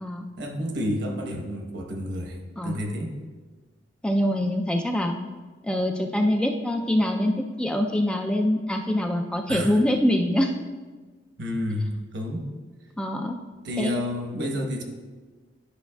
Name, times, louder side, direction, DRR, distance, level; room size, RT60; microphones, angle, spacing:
voice 1, 0.4-2.4 2.6-3.1 9.5-9.8 11.4-12.5 13.6-14.8, equal, 65° right, 2 dB, 1.0 m, -30 dB
voice 2, 4.0-5.2 5.6-7.3 7.6-10.5 13.0-13.4 13.8-13.9, left 1 dB, 5° left, 2 dB, 0.3 m, -24 dB
11.5 x 5.6 x 2.3 m, 1.3 s
head